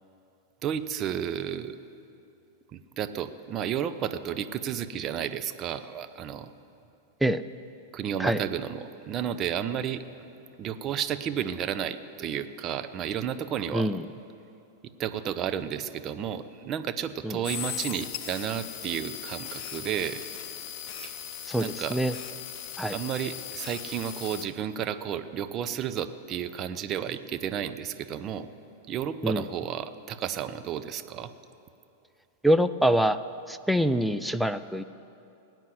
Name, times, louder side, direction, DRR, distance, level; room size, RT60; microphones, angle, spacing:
voice 1, 0.6-1.7 2.7-6.5 7.9-10.3 10.6-14.0 15.0-20.2 21.0-21.2 21.6-22.0 22.9-28.5 28.9-31.3, right 9 dB, 35° right, 11 dB, 0.8 m, -32 dB
voice 2, 13.7-14.1 17.2-17.4 21.5-22.1 22.8-23.0 29.2-29.4 32.4-33.2 33.5-34.8, equal, ahead, 10 dB, 0.5 m, -25 dB
sound 1, 17.4-24.5, left 10 dB, 45° left, 1.0 m, -38 dB
18.5 x 9.2 x 7.8 m, 2.7 s
figure-of-eight pair, 95°, 0 cm